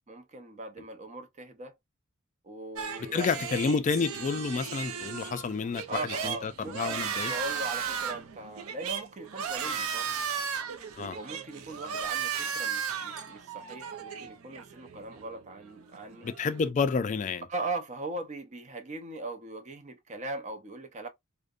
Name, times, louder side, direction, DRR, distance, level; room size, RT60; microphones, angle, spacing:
voice 1, 0.1-1.7 2.4-3.8 5.9-10.5 11.1-16.3 17.5-21.1, right 2 dB, 35° right, 0.5 m, -40 dB
sound 1, 2.8-16.7, right 7 dB, 85° right, 0.5 m, -36 dB
voice 2, 3.1-7.3 11.0-11.2 16.2-17.4, left 5 dB, 35° left, 0.3 m, -30 dB
2.5 x 2.1 x 2.3 m
head